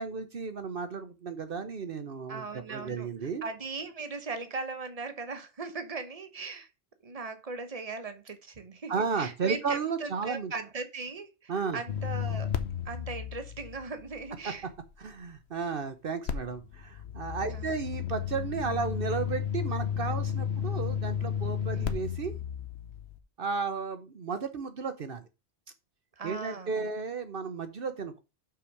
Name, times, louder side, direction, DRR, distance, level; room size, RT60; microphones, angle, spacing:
voice 1, 0.0-2.4 2.7-3.4 8.9-10.5 11.5-11.8 15.0-22.3 23.4-25.2 26.2-28.2, right 5 dB, 60° right, 1.0 m, -33 dB
voice 2, 2.3-3.1 3.4-6.7 7.0-12.5 12.8-14.7 17.4-17.7 21.7-22.0 26.2-26.7, right 4 dB, 35° right, 1.1 m, -39 dB
sound 1, 11.9-15.0 16.3-23.2, left 8 dB, 75° left, 1.1 m, -33 dB
5.8 x 4.9 x 6.5 m
omnidirectional pair, 1.1 m